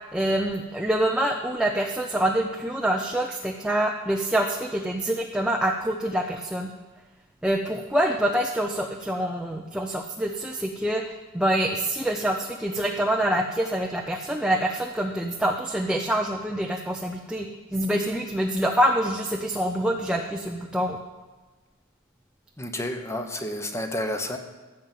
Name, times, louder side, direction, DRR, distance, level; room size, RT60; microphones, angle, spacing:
voice 1, 0.1-6.7 7.4-11.0 11.3-21.0, right 1 dB, 5° right, 2 dB, 0.5 m, -26 dB
voice 2, 22.6-24.4, left 1 dB, 15° left, 5 dB, 0.9 m, -30 dB
15.0 x 5.4 x 7.5 m, 1.3 s
head